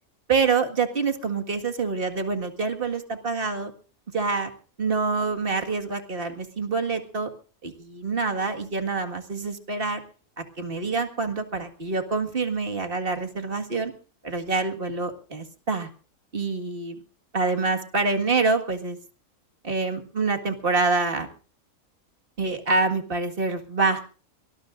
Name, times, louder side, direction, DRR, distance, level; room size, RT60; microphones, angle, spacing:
voice 1, 0.3-3.7 4.1-4.5 4.8-7.3 7.6-10.0 10.4-13.9 14.2-15.9 16.3-17.0 17.3-19.0 19.6-21.3 22.4-24.1, right 4 dB, 40° right, 5 dB, 2.1 m, -26 dB
23.5 x 19.5 x 2.6 m, 0.40 s
omnidirectional pair, 1.5 m